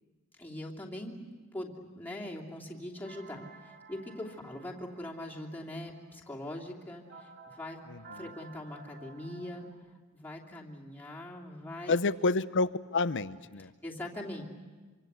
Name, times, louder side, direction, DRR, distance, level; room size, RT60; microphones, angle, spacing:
voice 1, 0.4-7.8 8.1-9.7 10.1-12.0 13.8-14.4, left 1 dB, 10° left, -3 dB, 2.9 m, -42 dB
sound 1, 3.0-9.7, right 3 dB, 45° right, 3.2 m, -54 dB
voice 2, 7.9-8.2 11.9-13.7, left 3 dB, 55° left, 15 dB, 0.8 m, -29 dB
26.5 x 25.0 x 8.2 m, 1.3 s
head